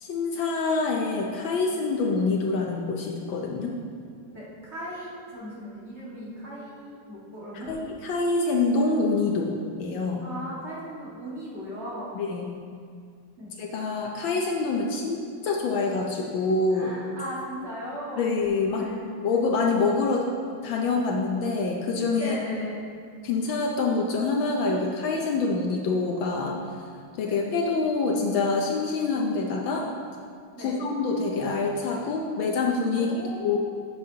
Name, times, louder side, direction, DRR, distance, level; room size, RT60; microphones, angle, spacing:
voice 1, 0.0-3.8 7.5-10.3 12.1-12.6 13.6-15.2 15.4-16.9 18.2-18.8 19.2-20.3 20.6-22.3 23.2-26.6 27.2-29.9 30.6-33.1 33.4-33.6, left 3 dB, 70° left, 0 dB, 1.4 m, -26 dB
voice 2, 4.3-7.8 10.2-12.2 13.4-13.5 16.7-18.4 18.7-19.1 22.2-22.8 27.2-27.4 30.5-30.9 32.9-33.6, equal, 30° right, -8 dB, 1.8 m, -37 dB
11.0 x 6.7 x 2.8 m, 2.2 s
omnidirectional pair, 2.4 m